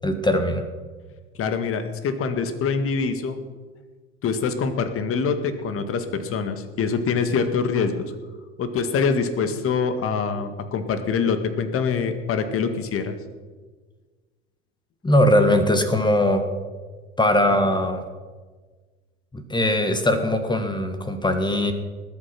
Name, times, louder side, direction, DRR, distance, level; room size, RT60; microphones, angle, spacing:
voice 1, 0.0-0.7 15.0-16.5 17.2-18.0 19.3-21.7, left 1 dB, 15° left, 7 dB, 1.7 m, -20 dB
voice 2, 1.4-3.4 4.2-7.9 8.6-13.2, left 5 dB, 40° left, 9 dB, 1.9 m, -24 dB
19.5 x 8.6 x 5.9 m, 1.4 s
hypercardioid pair, 75°, 34 cm